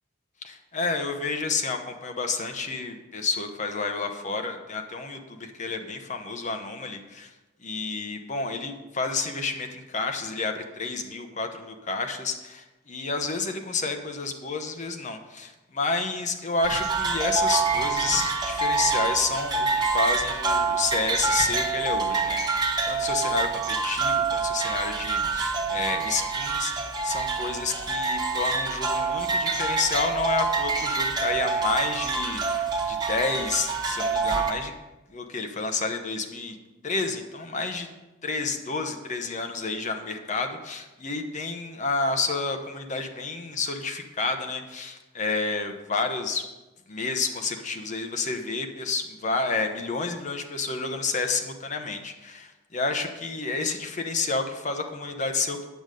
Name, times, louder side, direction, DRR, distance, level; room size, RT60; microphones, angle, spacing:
voice 1, 0.4-7.3 7.6-26.7 27.0-34.7 35.1-36.6 36.8-37.9 38.2-46.4 46.9-55.6, left 3 dB, 40° left, 6 dB, 0.9 m, -30 dB
sound 1, 16.6-34.5, right 4 dB, 20° right, 1.2 m, -26 dB
9.3 x 8.0 x 5.2 m, 1.1 s
head